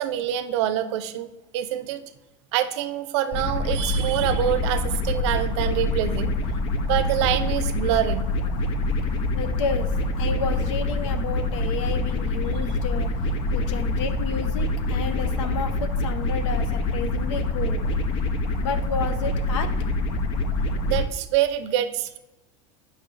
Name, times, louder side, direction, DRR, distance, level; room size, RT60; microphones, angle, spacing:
voice 1, 0.0-2.0 2.5-6.3 6.8-8.3 20.9-22.2, right 12 dB, 65° right, 11 dB, 0.6 m, -25 dB
sound 1, 3.3-21.0, left 2 dB, 35° left, 0.5 m, -25 dB
voice 2, 9.3-9.9 10.2-13.1 13.5-17.9 18.6-19.7, left 5 dB, 80° left, 10 dB, 0.8 m, -31 dB
8.3 x 5.3 x 3.2 m, 1.0 s
cardioid pair, 175°, 16 cm